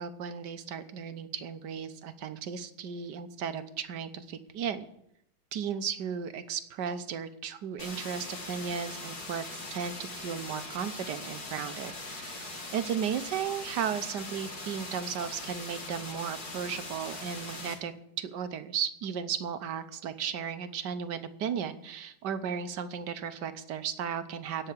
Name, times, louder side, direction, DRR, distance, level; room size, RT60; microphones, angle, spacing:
voice 1, 0.0-4.9 5.5-24.7, right 7 dB, 60° right, 10 dB, 1.4 m, -35 dB
sound 1, 7.8-17.7, left 2 dB, 45° left, 2.9 m, -41 dB
17.0 x 5.8 x 9.9 m, 0.77 s
omnidirectional pair, 2.3 m